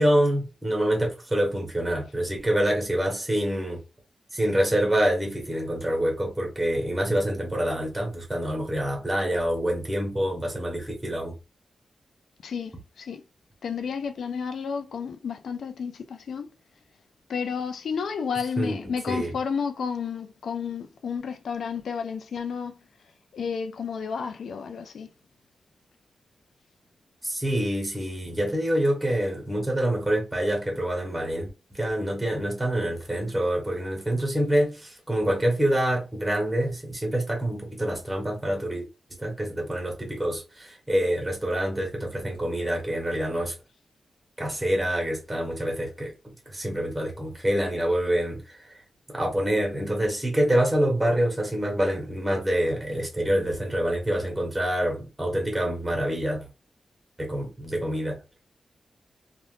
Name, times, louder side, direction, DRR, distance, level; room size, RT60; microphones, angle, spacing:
voice 1, 0.0-3.8 4.3-11.3 18.6-19.3 27.2-38.9 39.2-43.5 44.4-46.1 46.5-48.7 49.1-56.5 57.2-58.2, right 1 dB, 10° right, 1.0 m, -26 dB
voice 2, 12.4-13.2 13.6-16.5 17.3-22.8 23.3-25.1, left 6 dB, 85° left, 0.4 m, -31 dB
3.4 x 2.5 x 2.4 m
wide cardioid pair, 155°, 0 cm